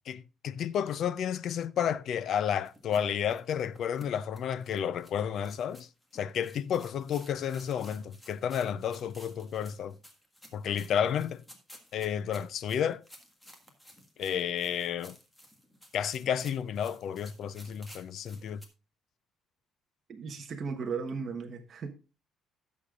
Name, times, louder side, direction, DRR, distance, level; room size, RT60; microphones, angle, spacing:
voice 1, 0.1-5.9 6.1-9.9 10.5-11.4 11.9-13.0 14.2-15.2 15.9-18.6, left 8 dB, 50° left, 0.5 m, -31 dB
sound 1, 2.6-18.7, equal, 10° left, 1.6 m, -55 dB
voice 2, 20.1-21.9, right 5 dB, 35° right, 1.2 m, -36 dB
17.5 x 6.7 x 2.5 m
cardioid pair, 170°, 0 cm